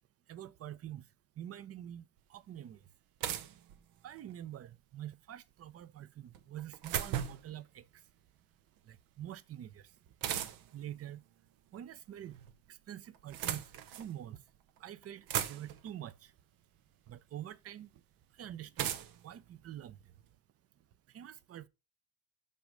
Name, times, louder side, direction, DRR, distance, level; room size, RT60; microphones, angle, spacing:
voice 1, 0.3-1.1 1.4-2.8 4.0-8.0 8.8-9.9 10.7-11.2 11.7-12.4 12.7-13.6 14.0-14.4 14.8-16.3 17.1-17.9 18.3-18.9 19.2-20.0 21.1-21.7, right 11 dB, 45° right, 0.7 m, -46 dB
sound 1, 2.2-2.3 3.2-4.3 6.3-7.6 10.2-10.8 12.0-12.6 13.1-14.1 14.8-14.9 15.0-15.9 17.1-17.2 18.8-20.3, right 10 dB, 80° right, 1.0 m, -38 dB
6.4 x 5.7 x 5.1 m
cardioid pair, 105°, 35 cm